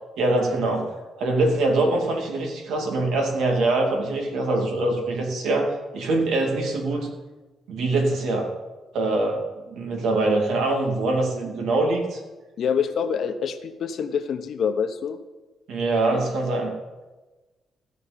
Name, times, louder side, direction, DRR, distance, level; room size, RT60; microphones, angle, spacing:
voice 1, 0.2-0.8 1.2-7.1 7.7-8.5 8.9-12.2 15.7-16.7, right 2 dB, 80° right, 1 dB, 2.6 m, -23 dB
voice 2, 12.6-15.2, left 7 dB, 65° left, 8 dB, 1.0 m, -26 dB
15.0 x 5.3 x 8.7 m, 1.2 s
cardioid pair, 105°, 0 cm